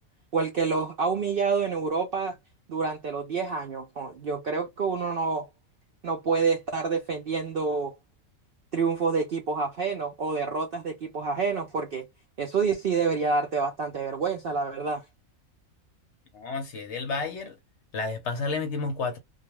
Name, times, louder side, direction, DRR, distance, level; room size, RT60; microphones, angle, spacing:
voice 1, 0.3-2.4 2.7-5.5 6.0-7.9 8.7-12.0 12.4-15.0, right 5 dB, 60° right, 0.6 m, -28 dB
voice 2, 16.3-17.6 17.9-19.2, left 4 dB, 65° left, 0.8 m, -31 dB
2.3 x 2.3 x 2.9 m
omnidirectional pair, 1.5 m